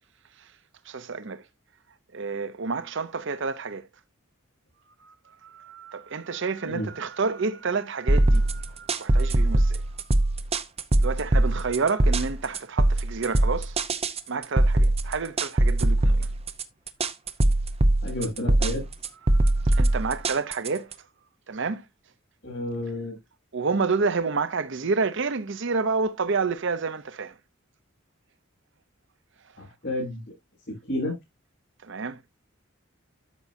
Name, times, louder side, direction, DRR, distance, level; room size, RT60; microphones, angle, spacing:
voice 1, 0.8-1.5 2.1-3.9 5.0-9.9 11.0-13.8 14.3-16.3 19.2-21.1 21.5-21.9 23.5-27.4 31.8-32.2, right 4 dB, 60° right, 0.7 m, -29 dB
sound 1, 8.1-20.9, right 1 dB, 30° right, 0.8 m, -22 dB
voice 2, 18.0-18.8 22.4-23.1 29.6-30.2 30.9-31.1, left 1 dB, 55° left, 6.3 m, -30 dB
13.0 x 5.4 x 2.7 m
head